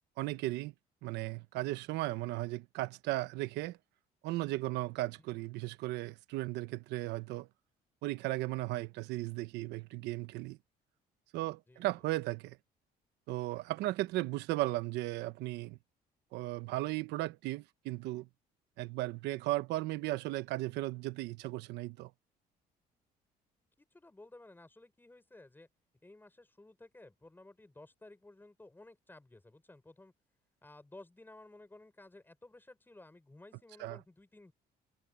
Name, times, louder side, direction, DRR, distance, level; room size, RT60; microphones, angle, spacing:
voice 1, 0.2-0.7 1.0-3.8 4.2-7.5 8.0-10.6 11.3-12.6 13.3-15.8 16.3-18.3 18.8-22.1 33.8-34.0, right 18 dB, 90° right, 1.0 m, -36 dB
voice 2, 23.8-25.7 26.0-30.1 30.6-34.5, left 2 dB, 10° left, 6.4 m, -55 dB
cardioid pair, 110°, 17 cm